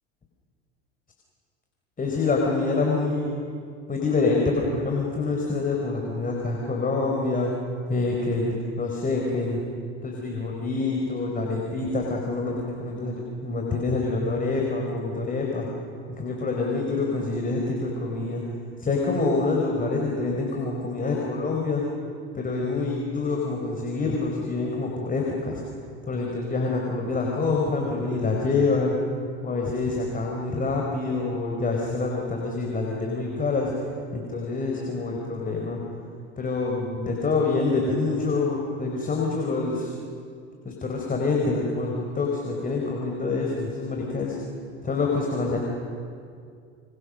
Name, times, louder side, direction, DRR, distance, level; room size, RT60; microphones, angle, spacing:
voice 1, 2.0-3.3 3.9-7.5 7.9-9.6 10.0-15.7 16.1-18.4 18.8-21.8 22.3-25.6 26.1-28.9 29.4-33.7 34.1-35.8 36.4-39.9 40.6-44.4 44.8-45.6, left 3 dB, 25° left, -1 dB, 4.6 m, -26 dB
27.0 x 26.0 x 6.5 m, 2.3 s
hypercardioid pair, 85°, 32 cm